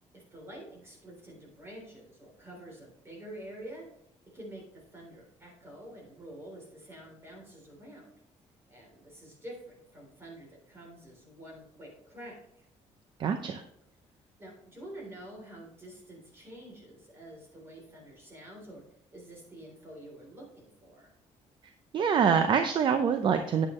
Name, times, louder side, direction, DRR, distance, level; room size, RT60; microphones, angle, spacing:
voice 1, 0.1-3.9 4.3-8.2 8.7-12.7 14.4-18.8 19.1-21.1, right 1 dB, 20° right, -1 dB, 3.6 m, -48 dB
voice 2, 13.2-13.6 21.9-23.7, right 7 dB, 40° right, 7 dB, 0.6 m, -25 dB
9.2 x 8.7 x 3.2 m, 0.74 s
cardioid pair, 165°, 12 cm